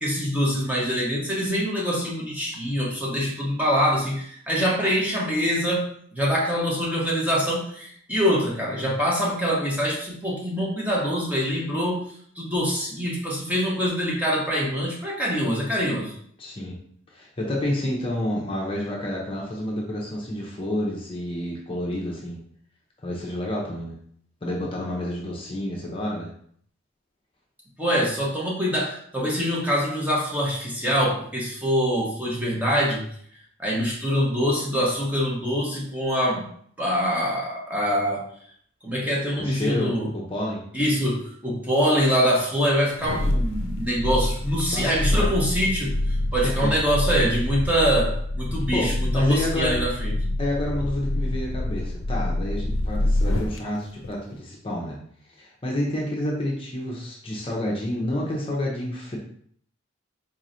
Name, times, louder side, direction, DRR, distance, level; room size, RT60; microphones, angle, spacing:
voice 1, 0.0-5.9 6.1-12.0 12.4-16.1 27.8-33.0 33.6-36.4 36.8-38.2 38.8-40.1 40.7-50.1, equal, 10° right, -4 dB, 0.8 m, -24 dB
voice 2, 16.4-16.8 17.1-22.4 23.0-23.9 24.4-26.3 39.4-40.7 44.7-45.4 46.4-46.7 48.7-49.8 50.4-55.0 55.4-59.2, left 1 dB, 25° left, -2 dB, 0.6 m, -29 dB
sound 1, 42.9-53.6 54.0-54.1, left 1 dB, 75° left, 0.5 m, -26 dB
4.1 x 3.1 x 2.6 m, 0.62 s
head